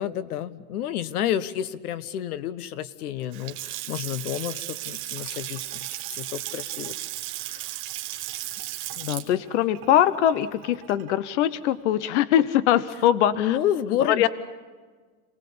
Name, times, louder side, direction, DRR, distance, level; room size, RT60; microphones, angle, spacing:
voice 1, 0.0-6.9 7.4-7.7 13.4-14.3, left 11 dB, 85° left, 17 dB, 1.4 m, -30 dB
Water tap faucet / Sink (filling or washing) / Splash splatter, 3.2-11.3, right 16 dB, 25° right, 1.5 m, -35 dB
voice 2, 9.0-13.6 14.1-14.3, left 11 dB, 50° left, 17 dB, 0.9 m, -22 dB
28.5 x 19.0 x 8.6 m, 1.5 s
supercardioid pair, 180°, 44 cm